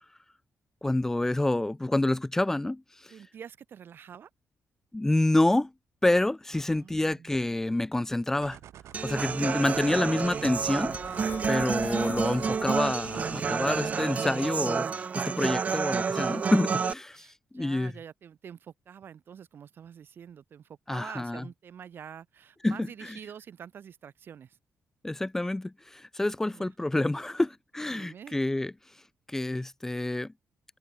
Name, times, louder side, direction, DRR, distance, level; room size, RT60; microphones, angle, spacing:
voice 1, 0.8-3.1 4.9-5.7 6.0-8.6 9.0-10.9 11.5-17.9 20.9-21.4 22.6-23.1 25.0-28.7 29.3-30.3, left 1 dB, 10° left, 1.1 m, -28 dB
voice 2, 3.1-4.3 6.5-7.4 17.1-24.6 26.4-26.7 27.9-28.4, right 8 dB, 50° right, 2.8 m, -47 dB
sound 1, 8.4-13.5, right 11 dB, 80° right, 1.9 m, -48 dB
sound 2, 8.9-13.9, left 9 dB, 55° left, 1.4 m, -47 dB
Human voice / Acoustic guitar, 8.9-16.9, right 6 dB, 30° right, 0.4 m, -29 dB
wide cardioid pair, 165°, 5 cm